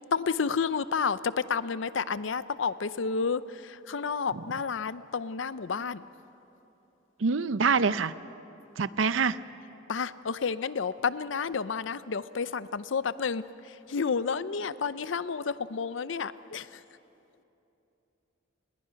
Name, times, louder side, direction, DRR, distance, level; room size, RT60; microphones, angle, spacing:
voice 1, 0.1-6.1 9.9-16.8, left 5 dB, 70° left, 15 dB, 0.6 m, -31 dB
voice 2, 7.2-8.1 8.8-9.4, right 5 dB, 80° right, 15 dB, 0.6 m, -25 dB
29.5 x 20.0 x 5.8 m, 2.9 s
head